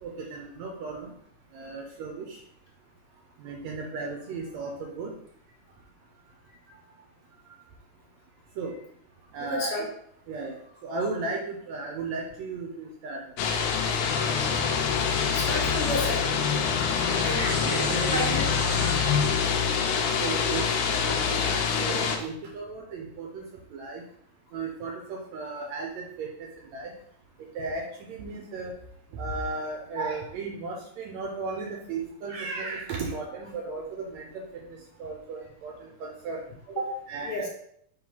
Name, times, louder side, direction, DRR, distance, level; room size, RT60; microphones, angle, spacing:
voice 1, 0.0-1.1 1.5-2.4 3.4-5.1 8.6-8.7 9.3-9.7 10.3-13.2 17.6-18.3 20.2-24.0 24.5-26.9 27.6-28.7 29.1-37.5, right 3 dB, 75° right, 1 dB, 1.8 m, -35 dB
voice 2, 9.4-9.9 15.3-16.2 17.2-17.5 18.1-18.7 36.8-36.9 37.2-37.5, left 1 dB, 50° left, -4 dB, 2.3 m, -31 dB
sound 1, 13.4-22.2, left 6 dB, 75° left, 2.1 m, -26 dB
sound 2, 14.1-19.3, left 4 dB, 15° left, 0.5 m, -32 dB
5.9 x 3.1 x 5.6 m, 0.68 s
omnidirectional pair, 3.7 m